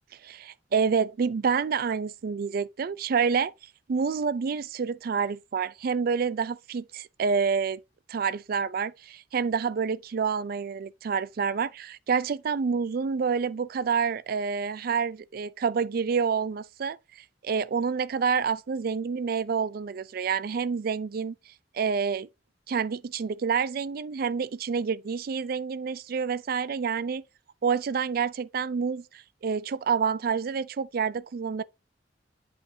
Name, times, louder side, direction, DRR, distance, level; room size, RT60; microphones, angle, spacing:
voice 1, 0.2-3.5 3.9-7.8 8.1-17.0 17.4-21.4 21.7-22.3 22.7-27.2 27.6-31.6, right 6 dB, 55° right, 0.4 m, -28 dB
8.4 x 5.1 x 2.7 m
head